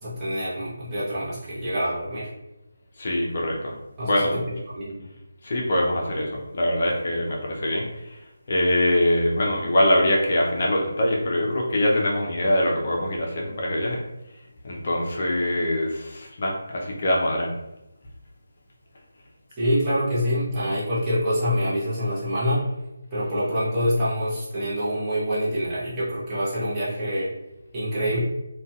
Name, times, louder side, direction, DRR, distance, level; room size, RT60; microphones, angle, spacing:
voice 1, 0.0-2.3 4.0-4.3 4.7-5.1 19.6-22.7 23.1-27.3 27.7-28.2, equal, 15° right, -11 dB, 0.8 m, -26 dB
voice 2, 3.0-3.7 4.0-4.4 5.4-14.0 14.6-17.5, left 1 dB, 45° left, -2 dB, 0.5 m, -23 dB
2.6 x 2.2 x 2.3 m, 0.93 s
figure-of-eight pair, 155°, 0 cm